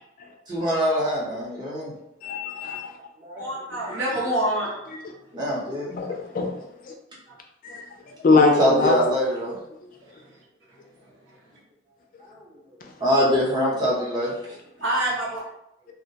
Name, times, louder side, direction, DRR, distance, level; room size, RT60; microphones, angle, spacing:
voice 1, 0.5-1.9 3.2-3.4 5.3-5.9 8.3-9.6 12.3-12.5 13.0-14.6, equal, 20° right, -6 dB, 0.7 m, -24 dB
voice 2, 2.2-2.9 5.9-6.5 6.9-7.0 7.6-7.9 8.2-9.0, left 3 dB, 45° left, 2 dB, 0.3 m, -21 dB
voice 3, 3.4-4.8 14.8-15.3, right 1 dB, 75° right, -5 dB, 0.9 m, -26 dB
2.2 x 2.1 x 2.7 m, 0.81 s
head